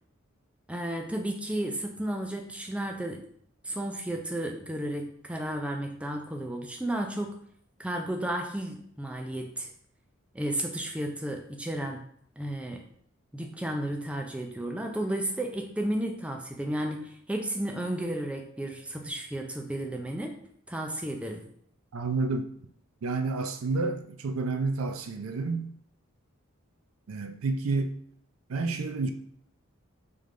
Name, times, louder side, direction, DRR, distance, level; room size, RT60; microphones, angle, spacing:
voice 1, 0.7-3.2 3.6-7.4 7.8-9.7 10.3-12.0 12.4-12.8 13.3-20.4 20.7-21.5, right 1 dB, 5° right, 0.4 m, -33 dB
voice 2, 21.9-22.5 23.0-25.7 27.1-28.0 28.5-29.1, right 3 dB, 85° right, 0.4 m, -29 dB
3.7 x 3.5 x 3.2 m
head